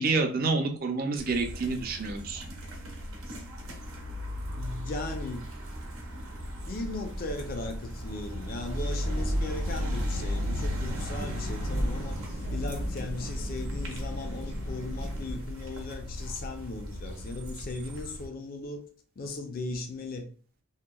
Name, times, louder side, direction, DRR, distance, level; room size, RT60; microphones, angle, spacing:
voice 1, 0.0-2.4, right 3 dB, 45° right, 0.4 m, -28 dB
sound 1, 1.2-18.3, equal, 80° right, 0.7 m, -36 dB
voice 2, 4.5-5.4 6.7-12.2 12.5-18.9 19.2-20.3, left 2 dB, 45° left, 0.4 m, -37 dB
sound 2, 9.0-15.4, right 1 dB, 85° left, 1.0 m, -35 dB
2.8 x 2.1 x 2.3 m
head